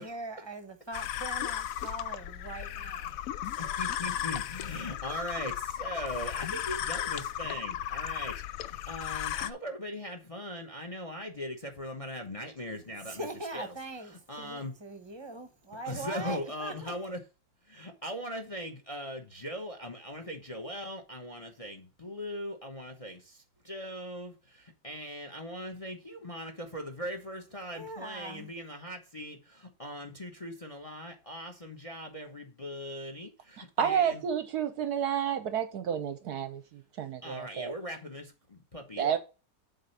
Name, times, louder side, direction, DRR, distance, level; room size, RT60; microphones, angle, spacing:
voice 1, 0.0-3.1 13.0-16.9 27.7-28.5, right 2 dB, 20° right, 1.0 m, -41 dB
sound 1, 0.9-9.5, left 11 dB, 80° left, 0.7 m, -35 dB
voice 2, 2.8-3.2 3.6-13.3 13.5-14.7 15.7-17.2 17.7-34.2 37.2-39.1, equal, 25° left, 1.0 m, -40 dB
voice 3, 33.8-37.7 39.0-39.2, right 8 dB, 65° right, 1.1 m, -30 dB
8.0 x 3.9 x 6.6 m
omnidirectional pair, 2.0 m